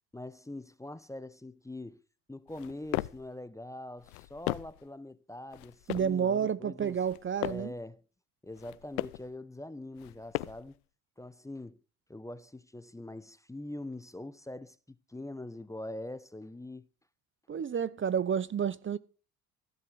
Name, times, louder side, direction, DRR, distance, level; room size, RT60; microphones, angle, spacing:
voice 1, 0.1-2.0 2.3-7.0 7.4-8.0 8.4-10.8 11.2-11.8 12.1-16.9, left 1 dB, 5° left, 0.8 m, -43 dB
sound 1, 2.5-3.3 4.0-4.9 5.5-6.2 6.9-7.8 8.5-9.3 10.0-10.8, left 20 dB, 85° left, 0.8 m, -37 dB
voice 2, 5.9-7.7 17.5-19.0, right 7 dB, 25° right, 0.8 m, -30 dB
15.5 x 7.6 x 7.8 m
supercardioid pair, 80°, 44 cm